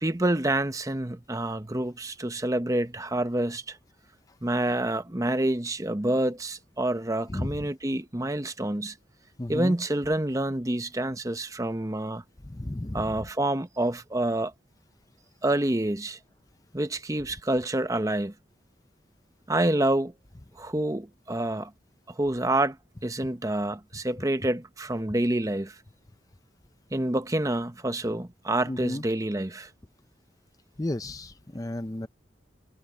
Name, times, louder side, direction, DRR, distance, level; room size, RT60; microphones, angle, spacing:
voice 1, 0.0-3.8 4.4-8.9 9.5-12.2 12.9-14.5 15.4-16.2 16.7-18.3 19.5-20.1 20.6-21.7 22.2-22.8 23.0-25.8 26.9-29.7, right 1 dB, 20° right, 0.9 m, -27 dB
voice 2, 7.3-7.7 9.4-9.7 12.4-13.1 28.7-29.0 30.8-32.1, left 1 dB, 20° left, 0.6 m, -33 dB
head